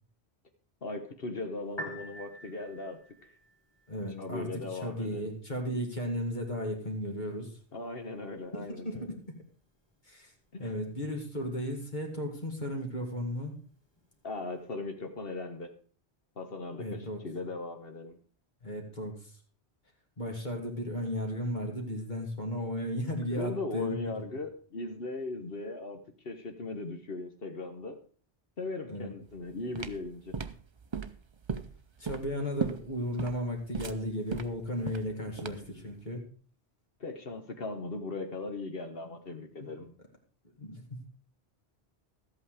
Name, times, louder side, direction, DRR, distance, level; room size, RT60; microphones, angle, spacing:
voice 1, 0.8-3.3 4.2-5.3 7.7-9.1 10.5-10.7 14.2-15.7 16.4-18.2 23.3-28.0 28.6-30.4 37.0-39.9, left 3 dB, 60° left, 6 dB, 1.4 m, -38 dB
Piano, 1.6-14.7, right 1 dB, 25° left, 2.0 m, -52 dB
voice 2, 3.9-7.5 8.5-9.4 10.1-10.3 10.6-13.5 16.8-17.2 18.6-19.2 20.2-24.0 28.9-29.1 32.0-36.2 39.0-39.2 39.6-39.7 40.6-41.0, equal, 45° left, 1 dB, 2.4 m, -35 dB
sound 1, 29.3-35.8, right 5 dB, 35° right, 0.5 m, -37 dB
13.0 x 8.4 x 4.9 m, 0.40 s
omnidirectional pair, 1.1 m